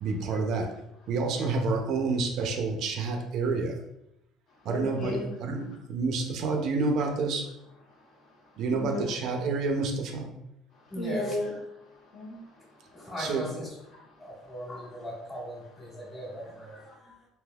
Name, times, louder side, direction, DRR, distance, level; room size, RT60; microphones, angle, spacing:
voice 1, 0.0-0.7 1.1-3.8 4.6-7.5 8.6-10.3 13.2-13.5, right 3 dB, 60° right, 3 dB, 0.5 m, -29 dB
voice 2, 4.7-5.3 8.7-9.1 10.7-11.5 11.9-13.1, left 1 dB, 55° left, -2 dB, 0.9 m, -35 dB
voice 3, 10.9-11.4 12.9-13.7 14.2-17.3, equal, 25° left, -5 dB, 1.4 m, -39 dB
3.3 x 2.8 x 2.3 m, 0.82 s
cardioid pair, 130°, 0 cm